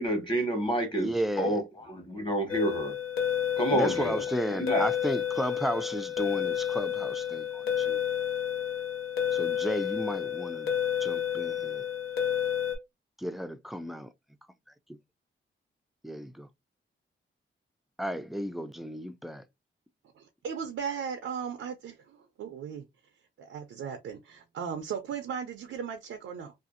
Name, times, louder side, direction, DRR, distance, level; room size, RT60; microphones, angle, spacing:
voice 1, 0.0-1.1 1.4-1.6 1.9-2.9 3.6-4.2 4.5-4.9, right 1 dB, 25° left, 1.2 m, -28 dB
voice 2, 1.0-1.6 3.7-8.0 9.3-10.7 11.0-11.8 13.2-14.1 16.0-16.5 18.0-19.4, equal, ahead, 0.3 m, -33 dB
sound 1, 2.5-12.8, left 9 dB, 80° left, 0.8 m, -30 dB
voice 3, 20.2-22.8 23.4-26.5, right 7 dB, 85° right, 0.5 m, -37 dB
2.6 x 2.4 x 2.4 m
cardioid pair, 80°, 21 cm